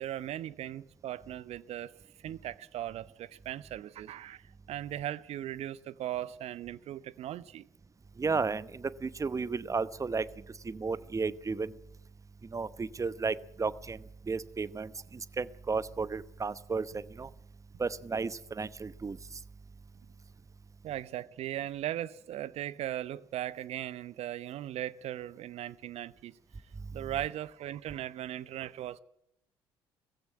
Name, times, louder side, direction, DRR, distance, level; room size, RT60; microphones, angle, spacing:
voice 1, 0.0-1.9 2.2-7.7 20.8-26.4 26.9-29.0, right 12 dB, 60° right, 0.8 m, -38 dB
voice 2, 8.2-10.3 10.6-11.7 12.5-14.0 14.3-17.3 17.8-19.2, right 4 dB, 25° right, 0.9 m, -33 dB
18.5 x 15.5 x 9.3 m
hypercardioid pair, 50°, 12 cm